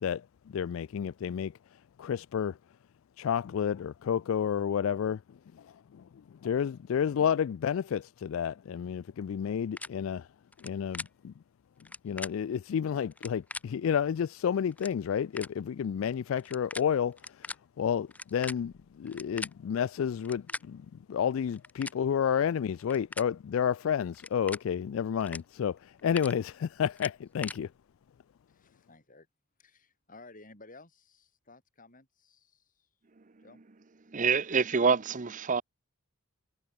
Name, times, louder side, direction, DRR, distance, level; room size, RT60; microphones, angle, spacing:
voice 1, 0.0-1.5 2.0-2.6 3.2-5.2 5.9-6.0 6.4-10.3 10.6-11.3 12.0-27.7, left 8 dB, 70° left, 0.3 m, -30 dB
sound 1, 9.8-9.9 10.5-10.7 10.9-11.1 11.8-12.3 13.1-13.6 14.4-14.5 14.7-14.9 15.4-15.5 16.4-16.8 17.1-17.5 18.1-19.5 20.2-20.6 21.5-22.0 22.7-23.3 24.1-24.6 25.2-25.4 25.8-26.3 27.0-27.6, left 2 dB, 5° left, 0.5 m, -39 dB
voice 2, 28.5-29.3 29.6-32.9 33.4-33.6, left 3 dB, 40° left, 6.7 m, -55 dB
voice 3, 34.1-35.6, right 5 dB, 40° right, 0.7 m, -26 dB
head